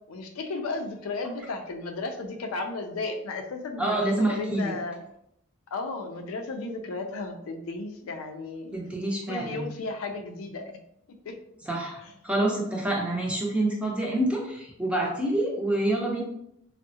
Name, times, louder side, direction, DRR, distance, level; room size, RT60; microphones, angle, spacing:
voice 1, 0.1-5.0 5.7-8.8 9.3-10.6 11.1-11.4 12.0-12.1, left 3 dB, 75° left, 5 dB, 0.4 m, -34 dB
voice 2, 3.8-4.7 8.7-9.7 11.7-16.2, right 1 dB, 5° right, -2 dB, 0.5 m, -27 dB
3.5 x 2.0 x 2.7 m, 0.76 s
head